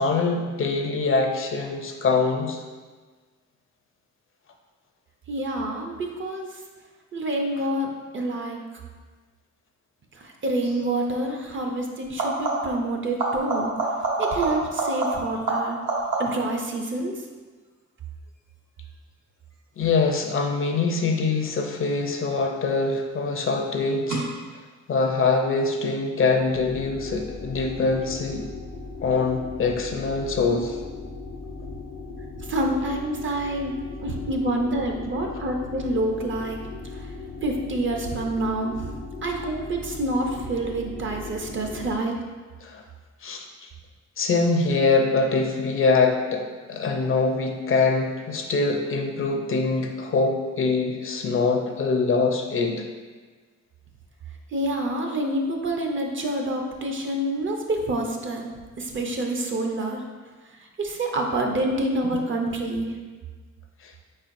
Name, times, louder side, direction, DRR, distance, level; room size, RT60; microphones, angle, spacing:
voice 1, 0.0-2.6 19.8-24.2 24.9-28.5 29.0-30.8 42.6-42.8 43.2-43.7 44.2-52.8 63.8-63.9, left 4 dB, 45° left, 3 dB, 0.5 m, -24 dB
voice 2, 5.3-6.5 7.1-8.6 10.2-13.7 14.2-15.8 16.2-17.1 32.4-33.7 34.0-36.6 37.4-38.9 39.2-42.1 54.5-58.5 58.8-60.0 60.8-62.9, right 1 dB, 40° right, 2 dB, 0.6 m, -27 dB
sound 1, 10.6-10.9 12.0-12.9 13.2-16.6 22.0-22.6 24.1-24.2, right 3 dB, 80° right, 1.2 m, -27 dB
sound 2, 26.2-41.9, left 3 dB, 85° left, 0.7 m, -38 dB
4.4 x 4.3 x 2.6 m, 1.4 s
cardioid pair, 100°, 30 cm